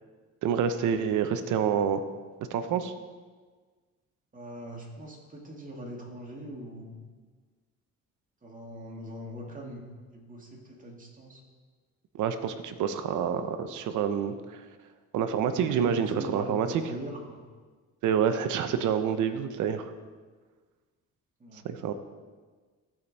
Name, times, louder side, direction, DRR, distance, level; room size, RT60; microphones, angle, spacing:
voice 1, 0.4-2.0 2.5-2.9 12.1-14.6 15.1-16.8 18.0-19.9 21.6-21.9, right 7 dB, 80° right, 9 dB, 0.8 m, -27 dB
voice 2, 4.3-7.0 8.4-9.8 10.1-11.4 15.7-17.4 21.4-21.6, equal, 25° right, -1 dB, 2.3 m, -41 dB
14.5 x 5.2 x 4.2 m, 1.4 s
cardioid pair, 90°, 30 cm